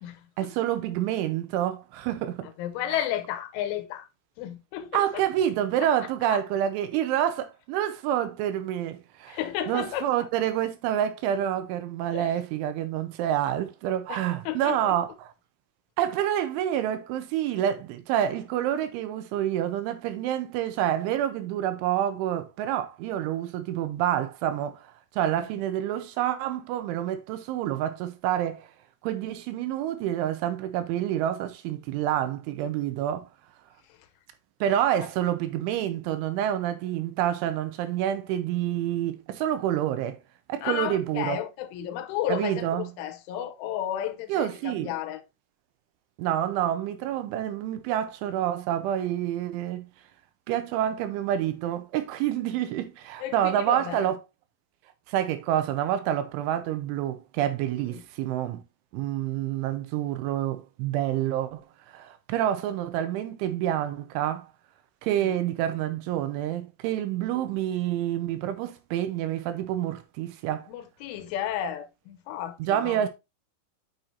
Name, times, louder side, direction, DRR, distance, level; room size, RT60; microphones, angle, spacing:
voice 1, 0.4-2.5 2.9-3.0 4.9-9.4 9.7-15.3 16.0-28.7 29.0-33.3 34.6-40.2 40.5-41.4 42.3-42.9 44.3-44.9 46.2-49.9 50.5-54.2 55.1-58.6 58.9-61.6 61.9-64.5 65.0-70.7 72.6-73.1, right 11 dB, 85° right, 3.2 m, -28 dB
voice 2, 2.4-4.1 4.4-5.2 6.2-6.4 9.3-10.3 12.1-12.4 14.1-15.0 25.4-25.5 40.6-45.2 50.9-51.0 53.2-54.1 65.2-65.3 70.7-73.0, left 11 dB, 85° left, 3.3 m, -33 dB
9.1 x 5.9 x 2.7 m
omnidirectional pair, 5.6 m